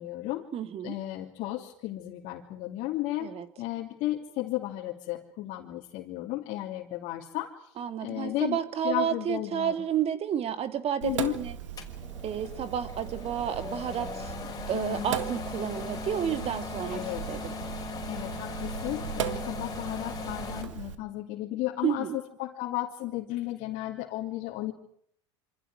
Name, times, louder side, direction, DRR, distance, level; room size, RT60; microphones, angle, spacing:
voice 1, 0.0-0.5 0.8-7.7 8.0-8.6 8.8-9.7 11.0-11.4 14.7-15.2 16.9-17.3 18.1-24.7, left 16 dB, 55° left, -2 dB, 3.1 m, -34 dB
voice 2, 0.5-1.0 3.2-3.5 7.8-11.5 12.2-14.3 14.7-17.5 21.8-22.2, right 9 dB, 40° right, 11 dB, 2.3 m, -31 dB
Sink (filling or washing), 11.0-20.9, right 10 dB, 80° right, 1.9 m, -38 dB
sound 1, 11.8-20.6, left 5 dB, 25° left, 5.5 m, -39 dB
27.5 x 26.0 x 4.9 m, 0.68 s
hypercardioid pair, 85°, 16 cm